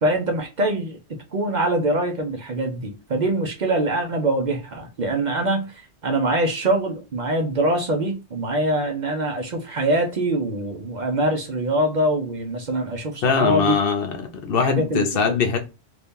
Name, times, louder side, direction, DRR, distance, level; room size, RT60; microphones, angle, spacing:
voice 1, 0.0-1.0 1.3-13.8 14.6-15.4, right 1 dB, 50° right, 0.7 m, -24 dB
voice 2, 13.2-14.2 14.4-15.6, left 5 dB, 65° left, 0.8 m, -21 dB
2.7 x 2.6 x 3.5 m
omnidirectional pair, 1.1 m